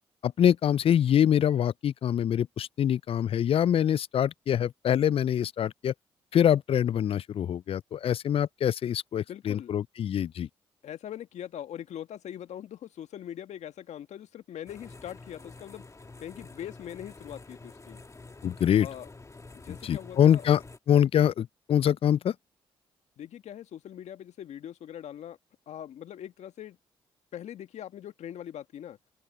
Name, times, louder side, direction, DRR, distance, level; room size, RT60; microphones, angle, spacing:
voice 1, 0.2-5.9 6.3-10.5 18.4-18.9 19.7-20.6 20.9-22.3, left 9 dB, 50° left, 0.4 m, -24 dB
voice 2, 9.3-9.7 10.8-15.9 16.2-18.0 18.8-19.1 19.5-20.4 23.2-25.4 25.7-26.8 27.3-29.0, left 10 dB, 70° left, 1.7 m, -42 dB
sound 1, 14.7-20.8, left 3 dB, 25° left, 1.6 m, -48 dB
open air
hypercardioid pair, 45°, 12 cm